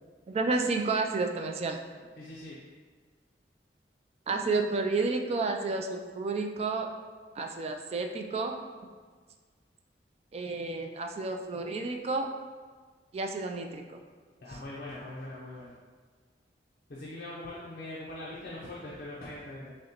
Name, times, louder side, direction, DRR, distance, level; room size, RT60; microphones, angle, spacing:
voice 1, 0.3-1.8 4.3-6.9 7.4-8.5 10.3-12.3 13.1-13.8, right 3 dB, 35° right, 3 dB, 0.3 m, -30 dB
voice 2, 2.2-2.6 14.4-15.7 16.9-19.8, left 1 dB, 55° left, -6 dB, 0.6 m, -41 dB
6.2 x 2.1 x 2.9 m, 1.5 s
head